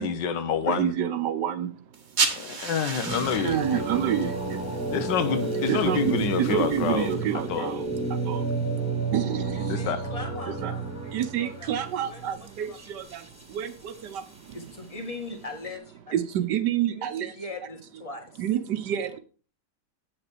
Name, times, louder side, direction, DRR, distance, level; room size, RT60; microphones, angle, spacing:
voice 1, 0.0-0.9 2.3-3.8 4.9-7.1 7.5-7.7 9.7-10.0, left 7 dB, 75° left, 1.5 m, -28 dB
voice 2, 0.6-2.0 3.1-4.8 5.7-8.5 9.1-9.9 10.6-10.7 11.1-14.6 16.1-17.4 18.4-19.2, right 10 dB, 70° right, 1.4 m, -29 dB
sound 1, 1.9-7.1, right 5 dB, 40° right, 1.3 m, -34 dB
sound 2, 3.0-14.0, right 3 dB, 5° right, 1.9 m, -31 dB
voice 3, 9.5-11.7 12.0-12.8 14.5-16.1 16.9-18.4, left 2 dB, 20° left, 1.6 m, -40 dB
8.7 x 6.1 x 5.0 m
omnidirectional pair, 2.0 m